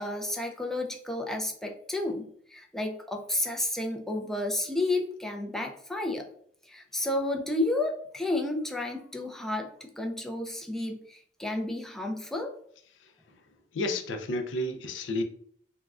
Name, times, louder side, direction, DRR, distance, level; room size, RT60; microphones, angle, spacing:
voice 1, 0.0-6.3 6.7-12.5, left 2 dB, ahead, 2 dB, 0.3 m, -31 dB
voice 2, 13.7-15.2, left 1 dB, 80° left, 5 dB, 0.4 m, -31 dB
3.5 x 2.1 x 2.3 m, 0.62 s
head